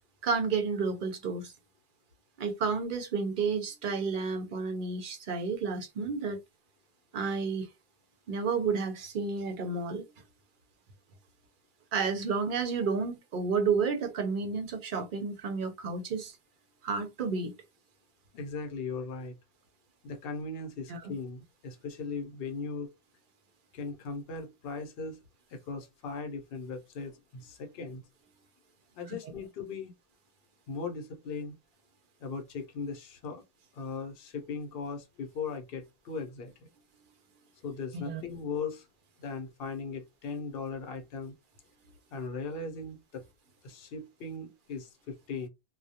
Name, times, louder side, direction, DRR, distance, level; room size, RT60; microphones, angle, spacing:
voice 1, 0.2-1.5 2.4-6.4 7.1-7.7 8.3-10.1 11.9-16.4 16.8-17.5 20.9-21.1 29.1-29.2 38.1-38.2, right 5 dB, 60° right, 0.7 m, -31 dB
voice 2, 18.3-19.3 20.0-22.9 23.7-25.2 25.5-28.0 28.9-29.9 30.7-31.5 32.2-33.4 33.7-36.7 37.6-38.9 39.2-41.3 42.1-43.2 43.6-45.5, left 4 dB, 65° left, 0.8 m, -38 dB
2.2 x 2.1 x 2.7 m
omnidirectional pair, 1.1 m